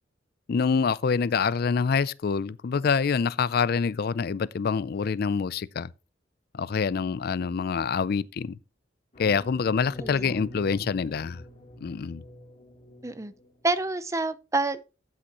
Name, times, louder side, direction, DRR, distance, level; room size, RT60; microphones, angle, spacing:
voice 1, 0.5-5.9 6.5-8.6 9.2-11.4 11.8-12.2, left 5 dB, 55° left, 0.4 m, -26 dB
sound 1, 9.1-13.7, equal, 40° left, 3.1 m, -45 dB
voice 2, 10.0-10.4 13.0-13.3 13.6-14.8, right 3 dB, 15° right, 0.6 m, -28 dB
12.5 x 8.7 x 2.9 m
head